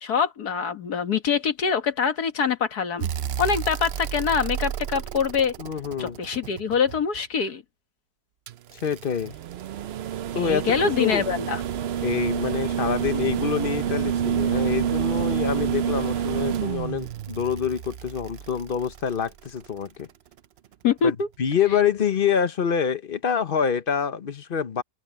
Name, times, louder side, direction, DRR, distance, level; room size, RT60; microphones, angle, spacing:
voice 1, 0.0-3.1 3.4-5.5 6.0-7.6 10.3-11.6 20.8-21.3, left 6 dB, 80° left, 2.0 m, -24 dB
sound 1, 3.0-7.2 8.5-19.7 21.2-21.3, right 9 dB, 60° right, 0.6 m, -29 dB
voice 2, 5.6-6.2 8.7-9.3 10.3-11.3 12.0-20.1 21.0-24.8, left 7 dB, 40° left, 1.0 m, -26 dB
omnidirectional pair, 1.6 m